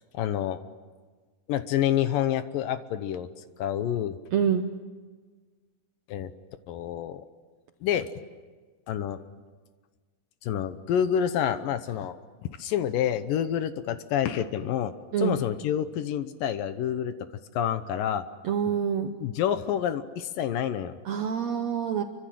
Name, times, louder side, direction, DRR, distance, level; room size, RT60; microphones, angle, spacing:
voice 1, 0.1-0.6 1.5-3.3 3.6-4.2 6.1-6.3 6.7-7.3 7.8-8.1 8.9-9.2 10.4-12.2 12.4-14.9 15.2-17.1 17.5-18.2 18.7-18.8 19.2-21.0, left 10 dB, 70° left, 11 dB, 2.5 m, -28 dB
voice 2, 4.3-4.6 15.1-15.3 18.4-19.1 21.0-22.0, right 8 dB, 70° right, 6 dB, 1.7 m, -26 dB
28.0 x 25.0 x 7.7 m, 1.4 s
omnidirectional pair, 4.4 m